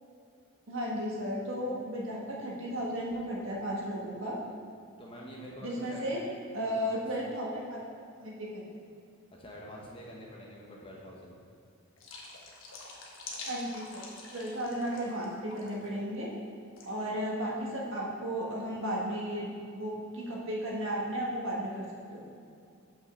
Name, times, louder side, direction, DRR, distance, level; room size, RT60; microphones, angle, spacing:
voice 1, 0.7-4.4 5.6-6.2 6.5-8.6 13.5-16.3 16.8-21.8 22.1-22.2, equal, 70° right, -3 dB, 1.6 m, -34 dB
voice 2, 5.0-6.2 6.6-7.0 9.4-11.3, equal, 25° left, -3 dB, 1.0 m, -46 dB
sound 1, 12.0-15.2 15.5-15.9 16.8-16.9, left 3 dB, 75° left, 1.2 m, -46 dB
5.6 x 5.5 x 6.8 m, 2.5 s
head